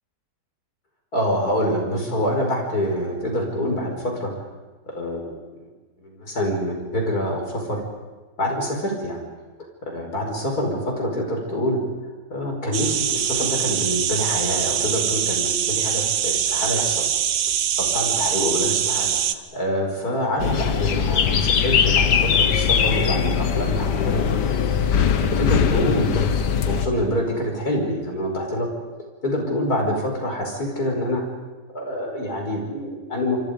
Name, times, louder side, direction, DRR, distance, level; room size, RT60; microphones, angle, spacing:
voice 1, 1.1-4.3 4.9-5.7 6.0-7.8 8.4-9.2 9.9-11.8 12.3-17.0 17.8-19.1 19.5-24.3 25.2-28.7 29.2-31.2 31.7-33.4, equal, 65° left, 1 dB, 5.9 m, -26 dB
sound 1, 12.7-19.3, right 9 dB, 70° right, 1.5 m, -23 dB
sound 2, 20.4-26.9, left 7 dB, 90° left, 1.8 m, -20 dB
26.5 x 26.0 x 5.3 m, 1.3 s
omnidirectional pair, 1.8 m